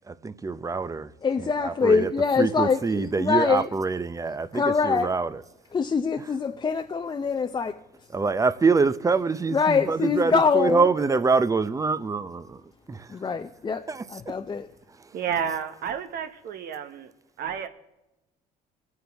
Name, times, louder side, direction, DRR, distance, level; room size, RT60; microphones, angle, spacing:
voice 1, 0.1-1.1 1.6-2.1 2.4-5.3 8.1-12.6 12.9-13.2 13.9-14.0, right 4 dB, 20° right, 0.6 m, -25 dB
voice 2, 1.2-3.7 4.3-5.2 5.7-7.8 9.5-11.0 13.1-14.7, left 5 dB, 25° left, 0.6 m, -24 dB
voice 3, 15.1-17.1 17.4-17.7, right 8 dB, 65° right, 1.0 m, -31 dB
23.5 x 9.5 x 3.5 m
cardioid pair, 110°, 17 cm